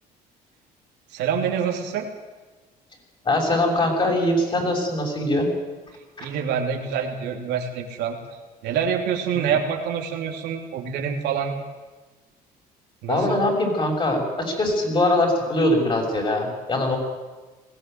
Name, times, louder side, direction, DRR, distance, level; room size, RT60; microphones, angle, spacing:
voice 1, 1.1-2.1 6.2-11.5 13.0-13.4, right 7 dB, 85° right, 1 dB, 3.3 m, -26 dB
voice 2, 3.2-5.5 6.2-6.3 9.3-9.5 13.1-17.0, left 1 dB, 30° left, 1 dB, 6.6 m, -22 dB
20.5 x 16.0 x 9.3 m, 1.2 s
cardioid pair, 110°, 17 cm